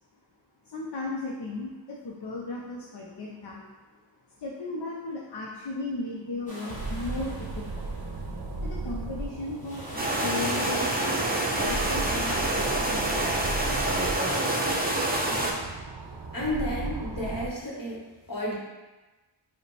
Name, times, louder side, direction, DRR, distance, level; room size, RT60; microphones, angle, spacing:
voice 1, 0.6-3.7 4.4-7.9 8.6-11.3 11.7-13.3, left 2 dB, 60° left, -3 dB, 0.6 m, -36 dB
sound 1, 6.5-8.6 9.2-13.3, left 1 dB, 15° left, 1.1 m, -44 dB
sound 2, 6.7-17.5, right 3 dB, 65° right, 0.6 m, -36 dB
sound 3, 10.0-15.5, right 1 dB, 20° right, 0.6 m, -27 dB
voice 2, 16.3-18.0 18.3-18.5, left 1 dB, 45° left, -4 dB, 1.1 m, -31 dB
4.8 x 2.2 x 3.2 m, 1.2 s
wide cardioid pair, 40°, 45 cm